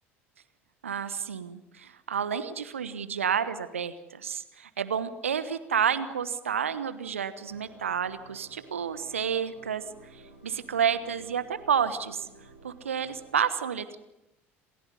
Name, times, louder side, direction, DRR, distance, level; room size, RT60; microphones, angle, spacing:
voice 1, 0.8-9.8 10.4-12.3 12.6-14.0, right 7 dB, 75° right, 14 dB, 1.2 m, -30 dB
sound 1, 7.4-13.2, right 2 dB, 90° left, 3.6 m, -53 dB
28.0 x 15.5 x 9.7 m, 0.92 s
figure-of-eight pair, 65°, 7 cm